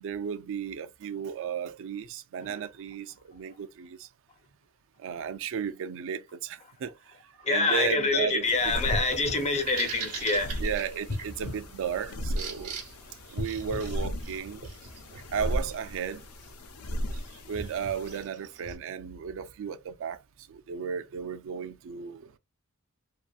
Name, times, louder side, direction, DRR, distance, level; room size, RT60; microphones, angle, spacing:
voice 1, 0.0-4.1 5.0-8.7 10.6-12.8 13.3-14.7 15.3-16.3 17.5-20.2 20.5-22.4, right 7 dB, 60° right, 0.4 m, -34 dB
voice 2, 7.4-10.5, left 3 dB, 30° left, 0.6 m, -26 dB
sound 1, 8.4-18.3, equal, 75° left, 0.5 m, -36 dB
sound 2, 8.9-10.5 11.0-12.6 13.3-15.0 15.5-15.6, left 2 dB, 55° left, 0.9 m, -39 dB
Bird vocalization bird call bird song, 9.3-18.8, right 6 dB, 85° right, 0.9 m, -43 dB
2.7 x 2.5 x 2.3 m
head